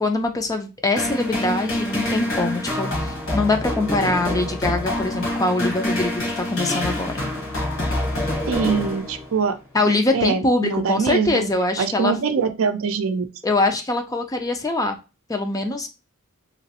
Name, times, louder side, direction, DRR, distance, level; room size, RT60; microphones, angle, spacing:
voice 1, 0.0-7.3 9.7-12.1 13.4-15.0 15.3-15.9, left 2 dB, 15° left, 5 dB, 0.4 m, -23 dB
sound 1, 1.0-9.5, left 1 dB, 65° left, 1.4 m, -26 dB
voice 2, 8.5-9.6 10.1-11.5 11.8-13.3, right 5 dB, 65° right, 8 dB, 0.5 m, -23 dB
3.0 x 2.9 x 2.8 m, 0.29 s
head